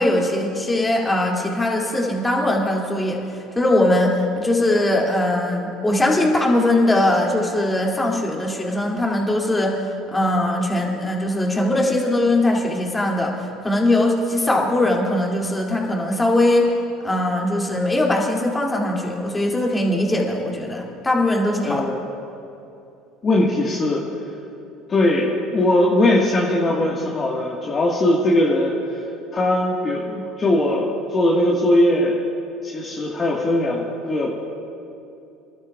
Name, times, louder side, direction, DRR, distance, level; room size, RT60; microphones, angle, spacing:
voice 1, 0.0-16.7 17.0-21.8, left 1 dB, 15° left, -1 dB, 2.6 m, -20 dB
voice 2, 21.6-22.1 23.2-24.0 24.9-29.0 29.3-32.2 32.6-34.3, left 1 dB, 35° left, -3 dB, 1.6 m, -20 dB
24.5 x 12.5 x 2.4 m, 2.8 s
hypercardioid pair, 75°, 0 cm